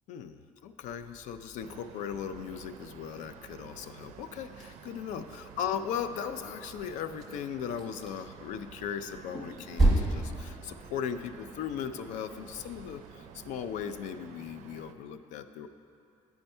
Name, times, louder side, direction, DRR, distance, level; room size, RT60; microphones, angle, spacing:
voice 1, 0.1-15.7, left 8 dB, 90° left, 10 dB, 0.4 m, -38 dB
sound 1, 0.8-14.0, right 2 dB, ahead, 1.1 m, -36 dB
sound 2, 1.6-14.9, right 8 dB, 75° right, 0.4 m, -51 dB
9.4 x 4.4 x 5.3 m, 2.5 s
cardioid pair, 180°, 12 cm